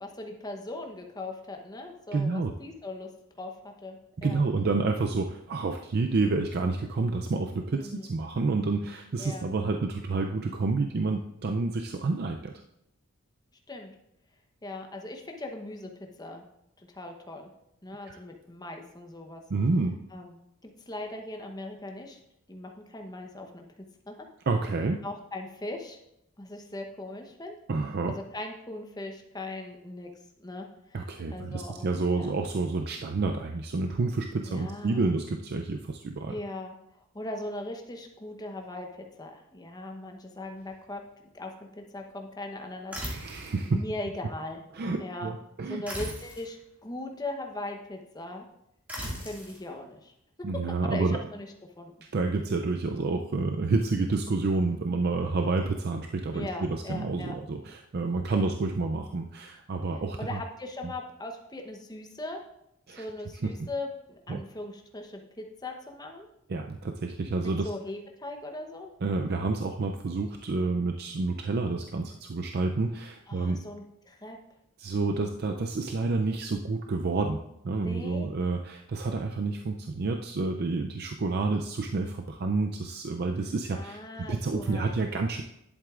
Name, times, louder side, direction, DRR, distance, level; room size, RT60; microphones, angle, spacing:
voice 1, 0.0-3.1 3.4-4.4 7.8-8.1 9.2-9.5 13.7-13.9 14.6-16.4 16.8-17.5 17.8-19.4 20.1-22.2 22.5-23.7 24.1-24.2 25.0-26.0 26.4-27.5 28.1-30.1 30.4-31.0 31.3-32.4 34.4-35.1 36.3-41.0 41.3-43.4 43.7-44.6 45.0-45.3 45.7-48.5 49.2-50.1 50.5-51.5 51.8-51.9 56.3-57.3 58.3-58.5 59.9-62.4 62.9-66.3 67.6-68.9 73.3-74.4 77.7-78.3 83.7-85.0, left 2 dB, 20° left, 3 dB, 0.9 m, -39 dB
voice 2, 2.1-2.5 4.2-12.5 18.0-18.2 19.5-20.0 24.5-25.0 27.7-28.2 30.9-36.3 43.1-43.8 44.7-45.8 50.4-51.2 52.0-60.4 62.9-63.0 63.4-63.7 64.3-64.4 66.5-67.7 69.0-73.6 74.8-77.4 77.6-84.0 84.3-85.4, right 3 dB, 50° right, 4 dB, 0.4 m, -29 dB
sound 1, 42.9-43.6 45.8-46.5 48.9-49.6, equal, 5° right, 2.1 m, -37 dB
11.0 x 8.0 x 2.5 m, 0.81 s
head